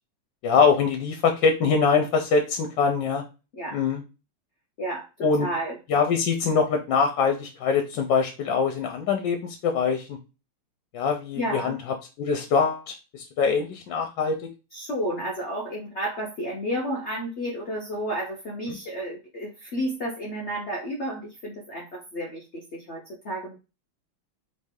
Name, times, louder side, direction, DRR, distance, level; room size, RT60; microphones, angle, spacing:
voice 1, 0.4-3.2 3.7-4.0 5.2-5.5 5.9-10.2 10.9-14.4, left 5 dB, 70° left, 5 dB, 1.2 m, -23 dB
voice 2, 5.4-5.8 11.4-11.7 14.7-23.6, equal, 85° left, -1 dB, 0.6 m, -31 dB
4.0 x 3.2 x 3.5 m, 0.30 s
omnidirectional pair, 2.2 m